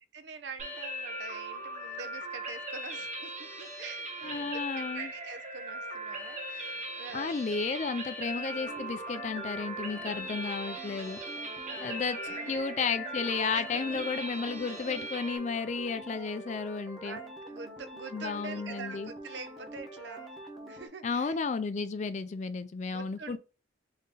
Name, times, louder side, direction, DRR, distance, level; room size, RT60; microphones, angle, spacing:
voice 1, 0.1-7.4 11.7-12.6 13.5-13.6 13.9-14.1 17.0-20.3 20.7-21.4 22.9-23.4, right 4 dB, 65° right, 0.5 m, -45 dB
sound 1, 0.6-15.4, right 1 dB, 40° right, 0.9 m, -39 dB
voice 2, 4.2-5.1 7.1-11.2 11.8-12.2 12.5-17.2 18.1-19.1 21.0-23.4, left 5 dB, 40° left, 0.3 m, -33 dB
sound 2, 8.2-20.9, right 1 dB, ahead, 0.9 m, -45 dB
3.7 x 2.7 x 3.7 m
head